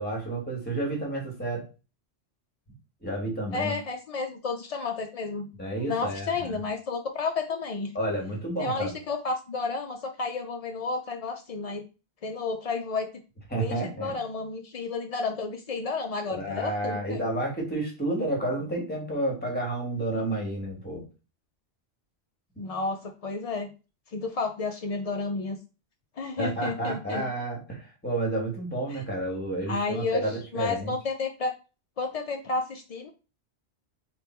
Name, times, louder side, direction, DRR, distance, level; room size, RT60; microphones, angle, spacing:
voice 1, 0.0-1.7 3.0-3.7 5.6-6.6 7.9-8.9 13.5-14.2 16.3-21.0 26.4-30.3 30.5-30.9, right 1 dB, 10° left, -1 dB, 1.3 m, -30 dB
voice 2, 3.5-5.5 5.8-7.9 8.6-11.8 12.2-13.1 13.6-17.2 22.6-23.7 24.1-25.6 26.2-27.3 28.9-29.0 29.7-31.5 32.0-33.1, left 4 dB, 70° left, 4 dB, 0.3 m, -31 dB
3.3 x 2.5 x 4.3 m, 0.32 s
omnidirectional pair, 1.2 m